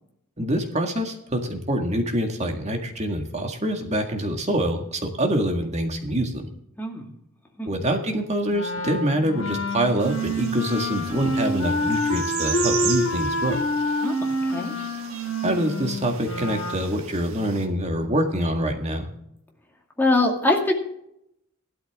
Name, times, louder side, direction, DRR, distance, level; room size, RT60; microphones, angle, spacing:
voice 1, 0.4-6.5 7.7-13.6 15.4-19.1, right 1 dB, 30° right, 4 dB, 1.9 m, -25 dB
Wind instrument woodwind instrument, 8.5-16.8, left 1 dB, 75° left, 4.1 m, -27 dB
sound 1, 10.0-17.7, right 8 dB, 70° right, 1.6 m, -36 dB
voice 2, 20.0-20.7, left 2 dB, 10° left, 0 dB, 2.2 m, -22 dB
15.0 x 12.5 x 3.7 m, 0.75 s
head